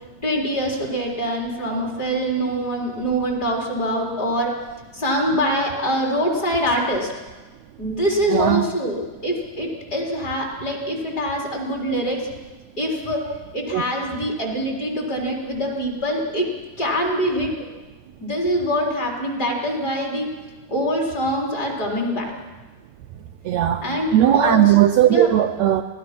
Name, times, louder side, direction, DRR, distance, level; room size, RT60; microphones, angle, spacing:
voice 1, 0.2-4.5 4.9-7.1 7.8-12.2 12.8-13.2 13.5-16.5 16.8-17.5 18.2-20.3 20.7-22.3 23.8-24.8 25.1-25.3, equal, 25° left, -1 dB, 4.4 m, -24 dB
voice 2, 8.3-8.6 13.7-13.8 23.4-25.8, right 12 dB, 85° right, 5 dB, 1.5 m, -17 dB
25.5 x 18.5 x 6.0 m, 1.2 s
omnidirectional pair, 4.1 m